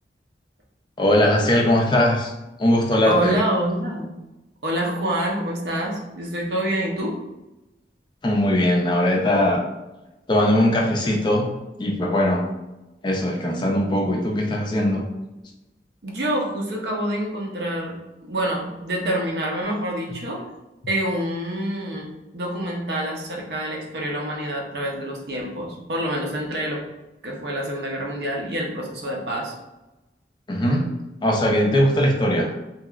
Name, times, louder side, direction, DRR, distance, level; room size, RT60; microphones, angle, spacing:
voice 1, 1.0-2.3 2.6-3.4 8.2-9.6 10.3-11.5 11.8-12.5 13.0-15.1 30.5-30.9 31.2-32.5, left 1 dB, 25° left, 0 dB, 0.4 m, -20 dB
voice 2, 3.0-4.1 4.6-7.2 16.0-18.0 18.2-20.4 20.9-22.1 22.3-26.8 27.2-29.5, right 1 dB, 70° right, -1 dB, 0.7 m, -26 dB
2.9 x 2.9 x 2.4 m, 0.98 s
head